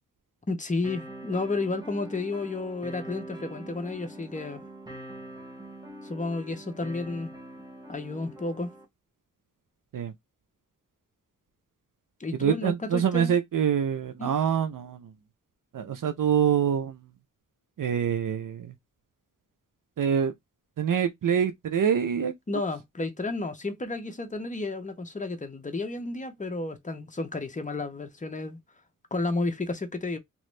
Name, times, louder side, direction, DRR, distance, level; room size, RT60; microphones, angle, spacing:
voice 1, 0.5-4.6 6.0-7.3 7.9-8.7 12.2-13.4 14.2-14.3 22.5-28.6 29.1-30.2, left 3 dB, 25° left, 0.7 m, -32 dB
sound 1, 0.8-8.8, right 1 dB, 10° right, 0.9 m, -44 dB
voice 2, 12.3-15.1 15.7-17.0 17.8-18.7 20.0-20.3 20.8-22.3, right 8 dB, 75° right, 0.5 m, -25 dB
3.0 x 2.5 x 3.1 m
wide cardioid pair, 105°, 33 cm